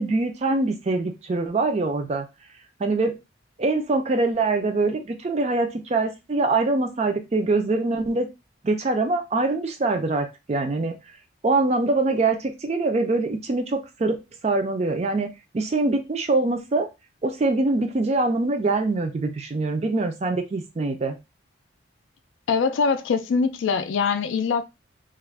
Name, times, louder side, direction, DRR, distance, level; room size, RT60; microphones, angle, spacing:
voice 1, 0.0-2.3 2.8-3.2 3.6-8.3 8.6-10.9 11.4-14.2 14.4-15.3 15.5-16.9 17.2-21.2, right 3 dB, 35° right, 0.4 m, -24 dB
voice 2, 22.5-24.6, left 5 dB, 70° left, 0.3 m, -23 dB
2.4 x 2.1 x 3.2 m
head